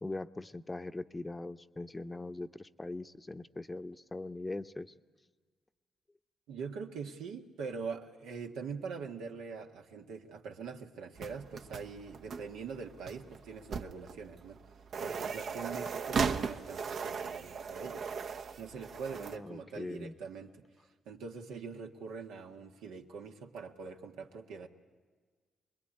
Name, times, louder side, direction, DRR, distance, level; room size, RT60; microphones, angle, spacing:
voice 1, 0.0-4.9 15.2-15.4 19.2-20.1, left 2 dB, 20° left, 11 dB, 0.8 m, -41 dB
voice 2, 6.5-14.6 15.0-18.1 18.6-20.6 21.0-24.7, right 5 dB, 85° right, 3 dB, 1.5 m, -43 dB
sound 1, 11.2-19.4, right 5 dB, 65° right, 1.0 m, -38 dB
23.5 x 21.5 x 10.0 m, 1.5 s
supercardioid pair, 65°, 0 cm